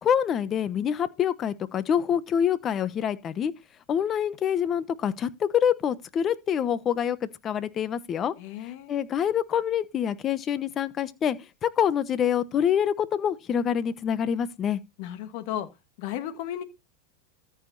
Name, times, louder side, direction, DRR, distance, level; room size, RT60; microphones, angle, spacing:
voice 1, 0.0-3.5 3.9-8.3 8.9-11.4 11.6-14.8, left 8 dB, 30° left, 0.9 m, -26 dB
voice 2, 8.4-9.0 15.0-15.7 16.0-16.6, left 11 dB, 60° left, 1.5 m, -34 dB
13.5 x 5.0 x 4.0 m
hypercardioid pair, 110°, 0 cm